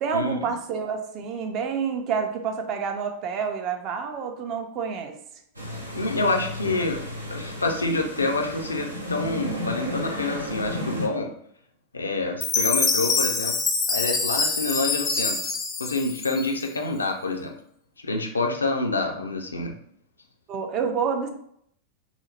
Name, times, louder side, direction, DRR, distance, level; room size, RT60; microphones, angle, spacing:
voice 1, 0.0-5.2 20.5-21.3, right 6 dB, 35° right, 5 dB, 0.5 m, -28 dB
sound 1, 5.6-11.1, left 1 dB, 85° right, 0.6 m, -33 dB
voice 2, 6.0-7.0 7.3-11.3 11.9-13.6 13.9-15.5 15.8-17.6 18.0-19.7, left 2 dB, 75° left, 2 dB, 0.5 m, -27 dB
Chime, 12.4-16.8, left 4 dB, 25° left, 0.5 m, -25 dB
3.9 x 2.0 x 3.1 m, 0.70 s
figure-of-eight pair, 90°, 0 cm